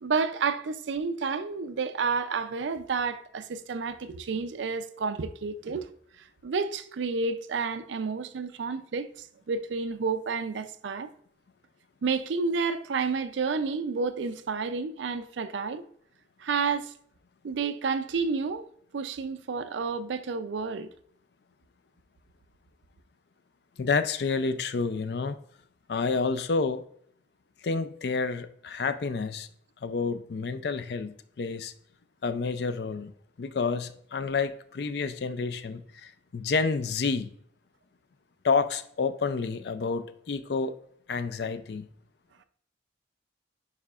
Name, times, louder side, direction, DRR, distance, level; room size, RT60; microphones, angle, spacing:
voice 1, 0.0-5.9 6.2-11.1 12.0-15.8 16.4-16.9 17.4-18.7 18.9-20.9, right 5 dB, 85° right, 0.4 m, -30 dB
voice 2, 23.8-25.4 25.9-26.8 27.6-29.5 29.8-31.7 32.2-33.1 33.4-37.3 38.4-40.7 41.1-41.9, left 4 dB, 60° left, 0.4 m, -29 dB
9.7 x 4.9 x 2.4 m
head